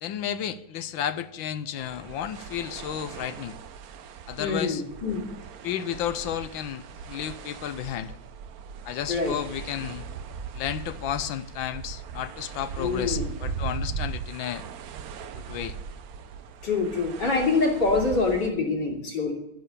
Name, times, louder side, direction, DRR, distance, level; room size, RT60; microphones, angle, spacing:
voice 1, 0.0-3.6 4.3-4.8 5.6-8.1 8.8-10.0 10.5-14.7 15.3-15.7, left 10 dB, 80° left, 13 dB, 1.5 m, -32 dB
sound 1, 1.8-18.5, right 6 dB, 60° right, 1.0 m, -39 dB
voice 2, 4.4-5.2 9.1-9.4 12.8-13.2 16.6-19.3, left 3 dB, 60° left, 0 dB, 3.6 m, -25 dB
12.0 x 10.0 x 6.8 m, 0.89 s
omnidirectional pair, 2.2 m